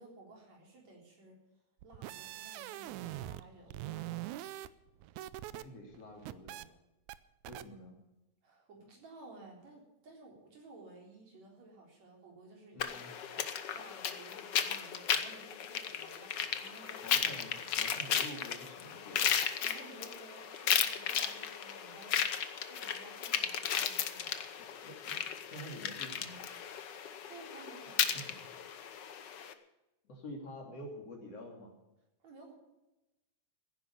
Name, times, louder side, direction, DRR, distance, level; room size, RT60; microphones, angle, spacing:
voice 1, 0.0-1.4 1.8-4.5 8.4-17.3 17.6-18.0 19.6-22.3 22.7-24.4 27.3-28.6 32.2-32.5, right 2 dB, 65° right, -1 dB, 5.2 m, -55 dB
sound 1, 1.8-3.4 3.7-5.6 5.9-6.7 7.1-7.2 7.5-7.6, right 15 dB, 80° right, 2.0 m, -42 dB
voice 2, 5.5-6.7 7.5-8.0 12.7-13.1 17.0-19.4 24.6-26.5 28.1-28.4 30.1-31.7, equal, 55° left, 1 dB, 3.8 m, -48 dB
sound 2, 12.8-29.5, left 8 dB, 75° left, 1.0 m, -35 dB
15.5 x 10.5 x 7.1 m, 0.97 s
omnidirectional pair, 3.4 m